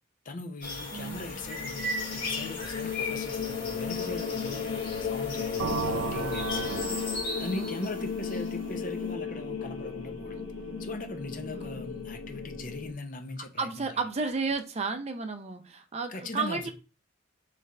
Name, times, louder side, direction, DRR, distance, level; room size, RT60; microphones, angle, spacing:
voice 1, 0.2-6.6 7.4-10.4 10.8-14.0 16.1-16.7, left 2 dB, 40° left, 0.6 m, -40 dB
sound 1, 0.6-8.9, left 2 dB, 65° left, 1.9 m, -37 dB
voice 2, 0.9-1.5 6.7-7.0 7.6-7.9 11.5-11.8 13.6-16.7, right 4 dB, 35° right, 0.5 m, -33 dB
sound 2, 1.0-12.9, left 6 dB, 90° left, 0.7 m, -35 dB
sound 3, 5.6-9.3, right 5 dB, 85° right, 0.4 m, -35 dB
3.6 x 3.3 x 4.2 m
head